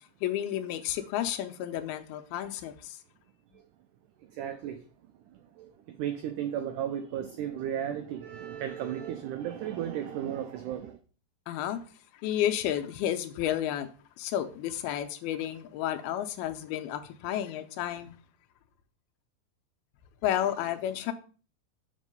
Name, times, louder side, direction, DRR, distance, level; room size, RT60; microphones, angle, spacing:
voice 1, 0.2-3.0 11.5-11.8 12.2-13.9 14.2-18.1 20.2-21.1, left 11 dB, 90° left, 2.6 m, -31 dB
voice 2, 4.3-4.8 5.3-11.0, right 10 dB, 90° right, 1.8 m, -35 dB
6.4 x 5.3 x 5.2 m
omnidirectional pair, 4.4 m